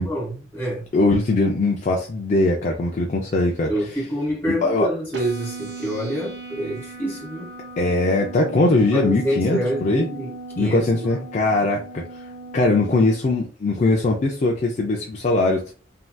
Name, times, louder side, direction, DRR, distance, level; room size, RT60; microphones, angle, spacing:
voice 1, 0.0-0.9 3.7-7.5 8.9-11.2, equal, 15° left, 1.4 m, -27 dB
voice 2, 0.9-3.7 4.6-4.9 7.8-10.1 10.6-12.0 12.5-15.6, left 2 dB, 40° left, 0.4 m, -20 dB
sound 1, 5.1-13.1, right 3 dB, 65° right, 0.6 m, -37 dB
3.2 x 2.7 x 2.2 m
head